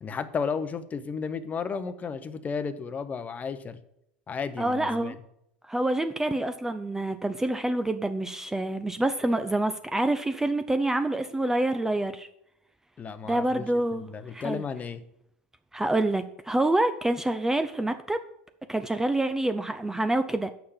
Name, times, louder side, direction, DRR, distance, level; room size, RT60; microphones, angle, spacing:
voice 1, 0.0-3.8 4.3-5.1 13.0-13.7 14.0-15.0, left 5 dB, 25° left, 12 dB, 0.8 m, -33 dB
voice 2, 4.6-5.2 5.7-12.3 13.3-14.6 15.7-18.2 18.7-20.5, right 1 dB, 10° right, 9 dB, 0.5 m, -27 dB
6.6 x 5.8 x 7.2 m, 0.76 s
hypercardioid pair, 85°, 6 cm